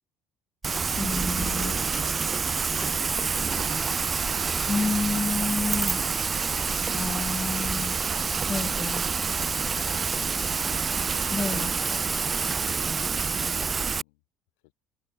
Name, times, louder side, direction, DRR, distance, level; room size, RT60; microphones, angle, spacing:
Rain, 0.6-14.0, right 5 dB, 30° right, 1.4 m, -27 dB
voice 1, 1.0-1.7 4.7-6.0 6.9-8.0 8.5-9.0 11.3-11.7, left 4 dB, 25° left, 1.1 m, -29 dB
voice 2, 1.5-4.6 7.1-7.5 8.3-9.9 10.2-10.4 13.4-14.2, left 30 dB, 75° left, 7.8 m, -53 dB
open air
hypercardioid pair, 70°, 0 cm